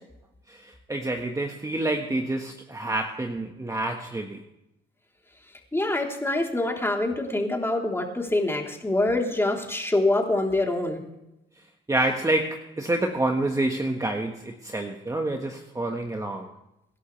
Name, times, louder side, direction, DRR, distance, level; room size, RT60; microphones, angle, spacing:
voice 1, 0.5-4.4 11.9-16.5, right 2 dB, 15° right, 3 dB, 1.6 m, -28 dB
voice 2, 5.7-11.0, left 2 dB, 10° left, 0 dB, 3.6 m, -25 dB
25.0 x 11.0 x 3.4 m, 0.88 s
cardioid pair, 90°, 20 cm